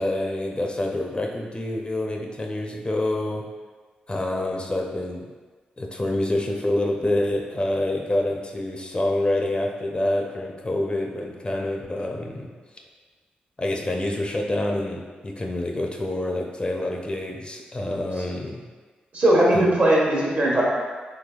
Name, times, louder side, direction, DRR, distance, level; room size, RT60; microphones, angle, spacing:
voice 1, 0.0-3.5 4.1-5.3 5.8-12.5 13.6-18.6, left 1 dB, 30° left, 1 dB, 0.5 m, -27 dB
voice 2, 19.1-20.6, right 1 dB, 55° right, -4 dB, 1.0 m, -19 dB
3.5 x 3.3 x 2.3 m, 1.4 s
supercardioid pair, 45°, 3 cm